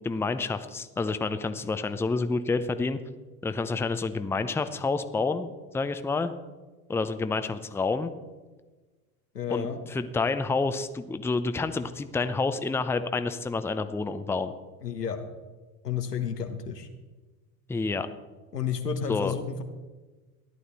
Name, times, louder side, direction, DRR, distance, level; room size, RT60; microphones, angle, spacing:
voice 1, 0.0-3.0 3.4-5.5 5.7-6.3 6.9-8.1 9.5-14.5 17.7-18.1 19.1-19.3, left 3 dB, 5° left, 10 dB, 0.6 m, -28 dB
voice 2, 9.3-9.8 14.8-15.2 15.8-16.9 18.5-19.6, left 7 dB, 90° left, 6 dB, 1.3 m, -31 dB
14.5 x 11.0 x 4.1 m, 1.3 s
figure-of-eight pair, 70°, 46 cm